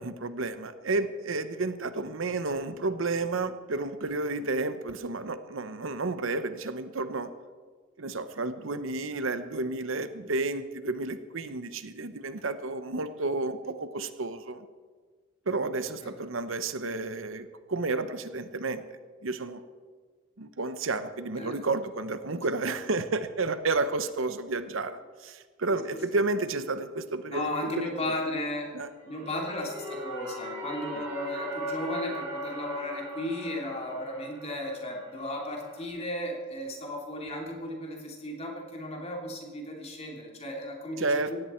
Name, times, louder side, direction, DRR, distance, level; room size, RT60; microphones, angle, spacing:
voice 1, 0.0-7.3 8.0-14.7 15.5-18.8 19.2-19.6 20.4-27.9 28.7-28.9 31.0-31.1 41.0-41.3, right 3 dB, 70° right, 11 dB, 0.9 m, -31 dB
voice 2, 27.3-28.7 29.0-41.4, left 1 dB, 30° left, 0 dB, 3.0 m, -35 dB
sound 1, 28.9-35.9, equal, 20° right, 5.7 m, -39 dB
18.0 x 16.0 x 4.5 m, 1.5 s
head